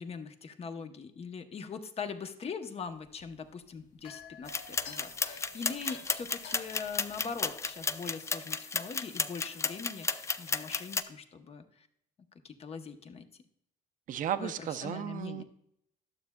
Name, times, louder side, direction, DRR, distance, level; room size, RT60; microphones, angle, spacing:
voice 1, 0.0-11.9 12.4-13.3 14.4-15.4, left 5 dB, 35° left, 8 dB, 0.8 m, -42 dB
sound 1, 2.8-7.9, left 5 dB, 85° left, 1.0 m, -51 dB
sound 2, 4.5-11.0, left 4 dB, 15° left, 0.3 m, -34 dB
voice 2, 14.1-15.4, right 10 dB, 50° right, 10 dB, 0.5 m, -34 dB
12.0 x 7.0 x 2.2 m, 0.72 s
cardioid pair, 110°, 17 cm